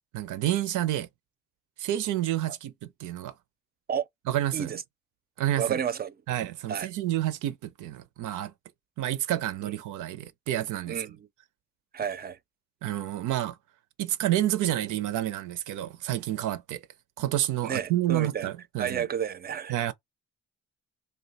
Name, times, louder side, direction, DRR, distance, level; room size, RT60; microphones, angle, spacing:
voice 1, 0.1-1.1 1.8-3.3 4.3-4.8 5.4-5.8 6.3-8.5 9.0-11.0 12.8-13.6 14.0-16.8 17.2-19.0 19.7-19.9, right 13 dB, 80° right, 0.6 m, -29 dB
voice 2, 5.6-6.1 6.7-6.9 9.6-9.7 10.9-11.3 11.9-12.4 17.6-18.5 18.8-19.8, right 8 dB, 30° right, 0.4 m, -31 dB
2.6 x 2.2 x 3.9 m
cardioid pair, 90°, 30 cm